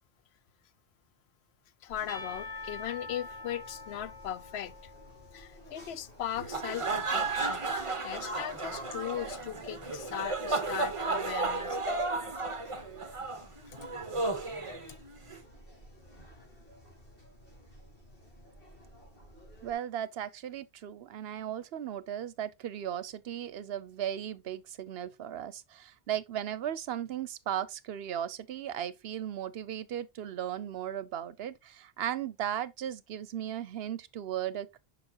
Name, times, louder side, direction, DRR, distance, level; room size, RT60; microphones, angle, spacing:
voice 1, 1.8-4.7 5.3-7.6 8.0-11.8, left 11 dB, 85° left, 0.9 m, -38 dB
sound 1, 1.9-19.8, equal, 60° left, 3.6 m, -54 dB
Percussion / Church bell, 2.1-6.1, left 3 dB, 45° left, 1.0 m, -45 dB
sound 2, 6.3-15.4, right 3 dB, 35° right, 1.0 m, -33 dB
voice 2, 19.6-34.8, right 10 dB, 75° right, 0.9 m, -36 dB
6.8 x 5.7 x 2.8 m
omnidirectional pair, 1.0 m